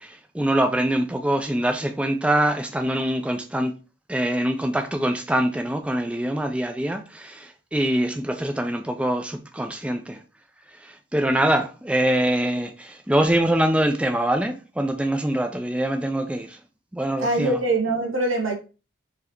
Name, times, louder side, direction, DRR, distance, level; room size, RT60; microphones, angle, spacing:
voice 1, 0.0-3.7 4.1-10.2 10.8-16.6 16.9-17.6, right 1 dB, 5° right, 0.3 m, -24 dB
voice 2, 17.2-18.5, right 2 dB, 85° right, 1.4 m, -23 dB
4.6 x 3.3 x 2.9 m
head